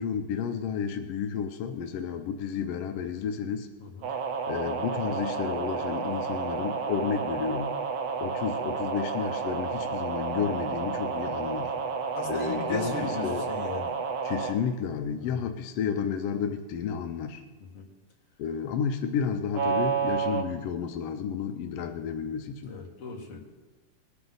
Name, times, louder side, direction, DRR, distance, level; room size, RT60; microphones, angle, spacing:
voice 1, 0.0-3.7 4.5-7.7 8.2-11.7 12.2-13.4 14.2-17.4 18.4-22.7, left 7 dB, 80° left, 5 dB, 1.4 m, -31 dB
voice 2, 3.8-4.1 11.6-11.9 12.1-13.9 15.2-15.4 17.6-17.9 22.6-23.4, left 4 dB, 50° left, -1 dB, 2.7 m, -37 dB
sound 1, 4.0-14.6 19.5-20.4, right 5 dB, 70° right, 2.2 m, -31 dB
20.0 x 9.6 x 3.9 m, 1.2 s
omnidirectional pair, 3.7 m